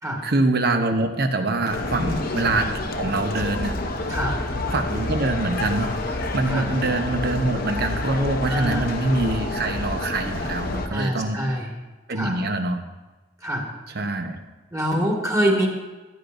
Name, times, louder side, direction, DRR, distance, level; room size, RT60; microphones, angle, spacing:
voice 1, 0.2-3.8 4.7-11.4 12.1-12.8 13.9-14.4, right 2 dB, 55° right, 6 dB, 1.0 m, -24 dB
sound 1, 1.7-10.9, left 2 dB, 50° left, 0.9 m, -28 dB
voice 2, 4.1-4.4 6.5-6.7 8.5-8.9 10.9-11.7 12.2-12.4 13.4-13.7 14.7-15.7, equal, 15° right, -1 dB, 2.0 m, -25 dB
15.0 x 10.0 x 2.7 m, 1.2 s
head